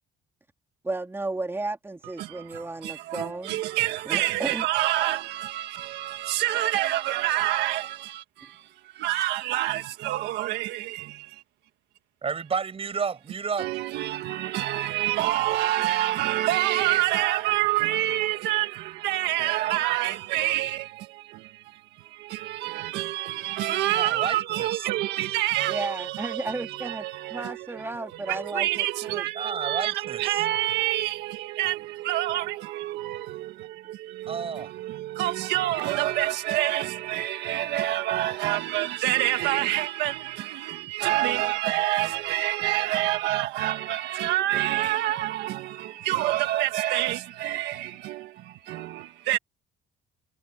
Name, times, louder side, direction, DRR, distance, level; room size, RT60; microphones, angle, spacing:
voice 1, 0.9-3.6 4.1-4.7 25.7-29.3, right 2 dB, 15° right, 3.4 m, -34 dB
voice 2, 2.2-11.4 13.6-27.8 28.3-49.4, right 15 dB, 90° right, 1.6 m, -27 dB
voice 3, 12.2-13.7 23.9-24.9 29.4-30.4 34.3-34.7, right 6 dB, 35° right, 6.9 m, -31 dB
cardioid pair, 110°, 17 cm